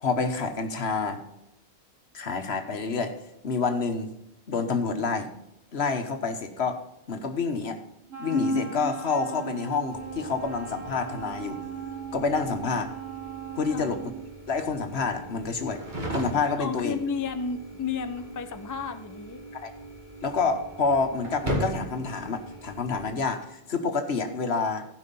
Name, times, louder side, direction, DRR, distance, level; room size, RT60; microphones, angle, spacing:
voice 1, 0.0-1.2 2.1-3.2 3.4-4.1 4.5-5.3 5.7-6.8 7.1-7.8 8.2-11.6 12.1-12.9 13.6-14.0 14.5-15.8 16.1-17.0 19.6-19.7 20.2-24.8, left 4 dB, 70° left, 7 dB, 1.4 m, -28 dB
Wind instrument woodwind instrument, 8.1-14.2, right 8 dB, 70° right, 3.3 m, -39 dB
sound 1, 9.9-23.1, right 1 dB, 45° right, 2.5 m, -39 dB
voice 2, 13.7-14.0 16.6-19.4, left 5 dB, 25° left, 8 dB, 0.5 m, -32 dB
15.0 x 5.5 x 5.3 m, 0.86 s
omnidirectional pair, 1.1 m